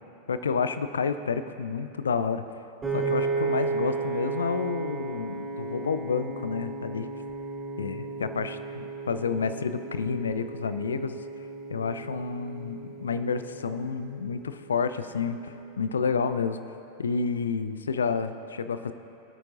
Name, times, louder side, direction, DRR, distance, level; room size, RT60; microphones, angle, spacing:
voice 1, 0.3-2.4 2.9-7.1 7.8-11.2 11.7-16.6 17.0-18.9, left 5 dB, 70° left, 11 dB, 0.5 m, -30 dB
Piano, 2.8-15.1, right 4 dB, 15° right, 3.1 m, -34 dB
24.0 x 8.9 x 2.7 m, 2.7 s
figure-of-eight pair, 90°, 0 cm